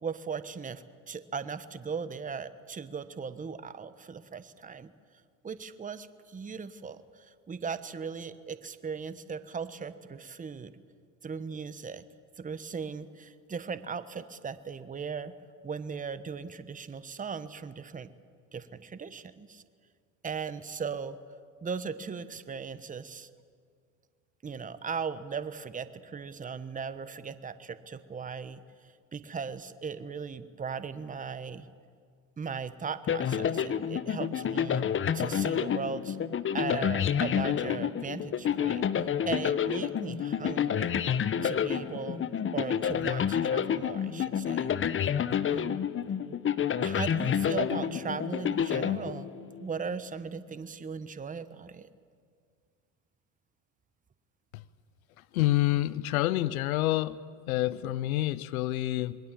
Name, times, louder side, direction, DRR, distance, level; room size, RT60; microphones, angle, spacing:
voice 1, 0.0-4.9 5.4-10.7 11.2-12.0 12.4-15.3 15.6-18.1 18.5-19.6 20.2-21.2 21.6-23.3 24.4-28.6 29.1-31.7 32.4-34.8 35.1-36.2 36.5-41.0 41.4-44.7 45.5-45.8 46.8-49.3 49.6-51.9, right 6 dB, 20° right, 13 dB, 1.2 m, -38 dB
sound 1, 33.1-49.6, left 8 dB, 30° left, 1.1 m, -29 dB
voice 2, 55.3-57.2 57.5-59.2, left 15 dB, 80° left, 18 dB, 0.9 m, -27 dB
27.5 x 21.0 x 7.6 m, 2.1 s
hypercardioid pair, 90°, 42 cm